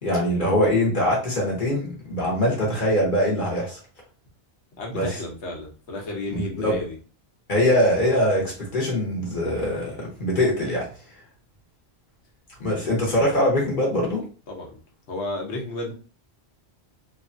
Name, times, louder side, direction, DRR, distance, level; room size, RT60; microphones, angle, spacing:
voice 1, 0.0-3.8 4.9-5.1 6.3-6.8 7.5-10.9 12.6-14.2, left 1 dB, 50° left, -3 dB, 1.0 m, -22 dB
voice 2, 4.8-7.0 14.5-14.7 15.1-15.9, left 2 dB, 85° left, 0 dB, 1.1 m, -32 dB
3.2 x 2.2 x 2.5 m, 0.37 s
omnidirectional pair, 1.1 m